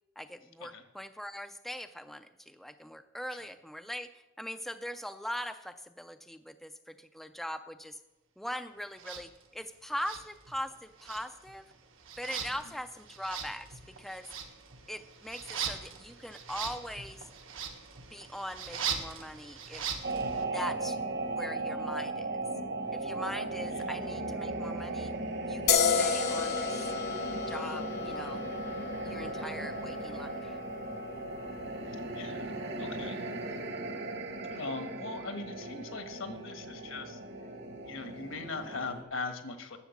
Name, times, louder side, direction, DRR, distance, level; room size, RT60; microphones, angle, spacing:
voice 1, 0.2-8.0 8.4-11.6 12.2-14.3 14.9-17.2 18.1-19.8 20.5-21.0 21.4-22.4 22.9-25.1 25.5-26.9 27.5-28.5 29.0-30.6, equal, ahead, 9 dB, 0.3 m, -41 dB
sound 1, 9.0-9.2 10.0-10.7 11.0-20.4, right 7 dB, 75° right, 1.3 m, -40 dB
sound 2, 20.0-39.0, right 2 dB, 60° right, 1.4 m, -37 dB
sound 3, 25.7-33.0, left 6 dB, 55° left, 0.9 m, -33 dB
voice 2, 32.1-32.5 32.8-33.2 34.5-37.2 37.8-39.8, left 3 dB, 75° left, 7 dB, 1.4 m, -40 dB
11.0 x 7.2 x 7.2 m, 1.0 s
head